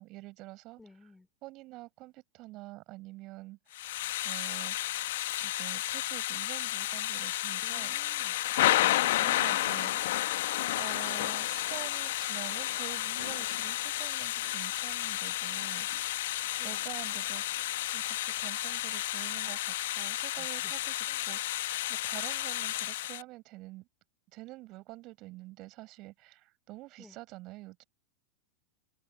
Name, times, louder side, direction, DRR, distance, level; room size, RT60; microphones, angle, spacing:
voice 1, 0.0-0.8 1.4-3.6 4.2-4.8 5.4-8.0 9.2-10.0 10.7-15.9 16.6-17.6 17.9-23.9 24.3-27.8, right 20 dB, 40° right, 7.3 m, -47 dB
voice 2, 0.8-1.3 7.6-8.4 16.6-16.8 20.3-20.7 21.0-21.2 27.0-27.2, left 3 dB, 10° left, 5.0 m, -55 dB
Thunder / Rain, 3.7-23.2, left 15 dB, 55° left, 1.8 m, -32 dB
figure-of-eight pair, 90°, 0 cm